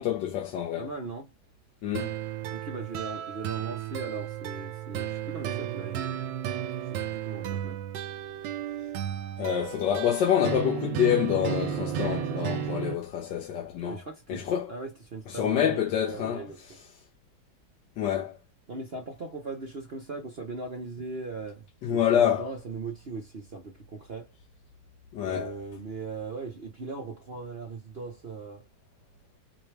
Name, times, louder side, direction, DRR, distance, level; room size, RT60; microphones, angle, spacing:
voice 1, 0.0-0.9 1.8-2.1 9.4-14.0 14.3-14.7 15.3-16.4 18.0-18.4 21.8-22.5 25.1-25.5, left 9 dB, 75° left, 1.5 m, -27 dB
voice 2, 0.8-1.3 2.5-6.3 6.9-7.8 13.9-16.8 18.7-24.3 25.3-28.6, right 3 dB, 45° right, 0.9 m, -39 dB
sound 1, 1.9-12.9, right 10 dB, 80° right, 1.3 m, -33 dB
4.8 x 2.3 x 3.3 m
omnidirectional pair, 2.0 m